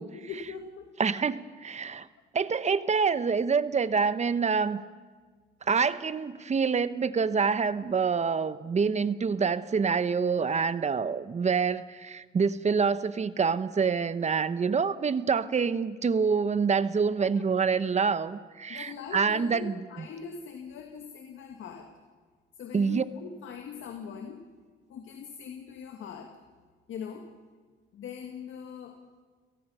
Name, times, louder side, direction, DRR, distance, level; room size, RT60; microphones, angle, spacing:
voice 1, 0.1-0.9 1.8-2.0 17.2-17.3 18.7-21.9 22.6-24.4 24.9-26.4 26.9-27.3 27.9-29.0, left 7 dB, 75° left, 4 dB, 2.0 m, -41 dB
voice 2, 1.0-2.1 2.3-4.8 5.7-19.7 22.7-23.0, right 5 dB, 35° right, 14 dB, 1.0 m, -26 dB
30.0 x 18.0 x 5.7 m, 1.5 s
cardioid pair, 90°, 20 cm